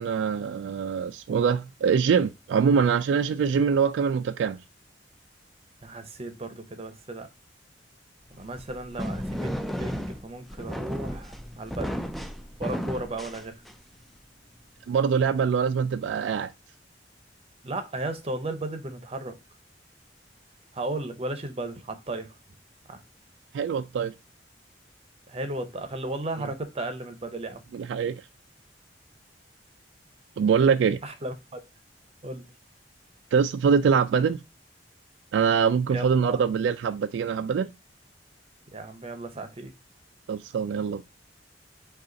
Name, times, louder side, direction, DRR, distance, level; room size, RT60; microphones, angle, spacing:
voice 1, 0.0-4.6 14.9-16.5 23.5-24.1 26.4-26.5 27.7-28.2 30.4-31.0 33.3-34.4 35.3-37.7 40.3-41.0, right 6 dB, 80° right, 0.3 m, -24 dB
voice 2, 5.8-7.3 8.4-12.0 12.6-13.6 17.6-19.4 20.7-22.3 22.9-23.0 25.3-27.7 31.0-31.6 32.2-32.5 35.9-36.4 38.7-39.7, right 2 dB, 35° right, 0.7 m, -35 dB
sound 1, 8.4-14.0, equal, ahead, 0.3 m, -34 dB
5.1 x 2.4 x 3.9 m
head